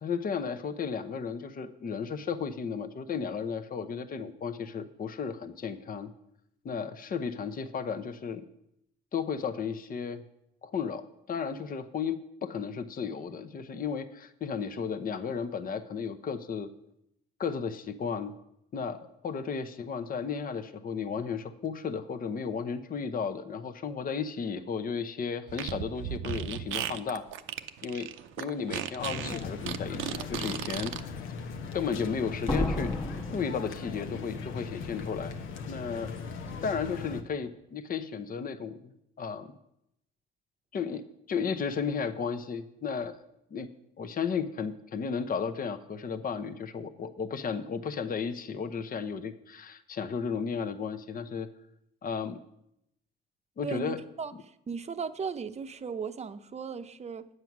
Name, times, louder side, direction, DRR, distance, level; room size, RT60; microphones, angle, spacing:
voice 1, 0.0-6.1 6.6-8.4 9.1-10.2 10.6-16.7 17.4-18.3 18.7-27.3 27.8-28.1 28.4-31.2 31.7-33.0 33.3-35.3 35.7-36.1 36.6-38.9 39.2-39.5 40.7-43.2 43.5-43.7 44.0-51.5 52.0-52.4 53.6-54.0, left 6 dB, 45° left, 11 dB, 0.8 m, -34 dB
Fart, 25.5-31.0, right 11 dB, 85° right, 0.6 m, -35 dB
sound 1, 29.0-37.2, left 5 dB, 85° left, 1.0 m, -39 dB
Slam, 29.3-29.4 30.0-30.4 32.5-34.4 34.6-34.7, left 1 dB, 25° left, 1.3 m, -33 dB
voice 2, 53.6-57.3, right 5 dB, 35° right, 11 dB, 0.7 m, -37 dB
9.5 x 7.7 x 6.0 m, 0.80 s
cardioid pair, 90°, 20 cm